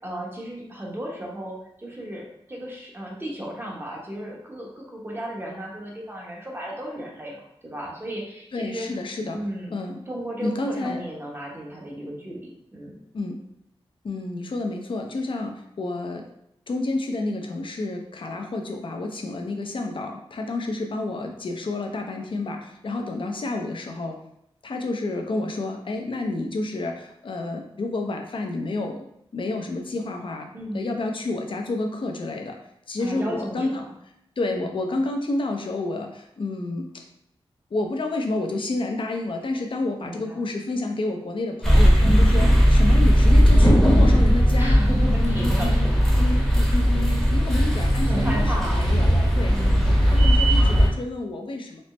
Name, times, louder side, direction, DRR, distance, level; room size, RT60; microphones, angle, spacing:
voice 1, 0.0-8.9 9.3-9.7 10.1-12.9 30.5-30.9 33.0-33.9 34.5-34.7 40.0-40.5 44.6-46.0 46.3-46.6 48.0-48.8 49.5-50.0, right 1 dB, 20° right, -2 dB, 1.0 m, -34 dB
voice 2, 8.5-9.4 9.7-10.0 10.4-11.0 13.1-13.4 14.0-16.3 16.7-24.2 24.6-29.0 29.3-30.5 30.7-32.6 32.9-33.8 34.4-37.0 37.7-44.8 45.1-49.5 49.8-51.8, left 2 dB, 55° left, 3 dB, 0.5 m, -29 dB
sound 1, 41.6-50.9, equal, 5° left, 0.9 m, -17 dB
4.2 x 2.0 x 3.2 m, 0.77 s
wide cardioid pair, 85°, 10 cm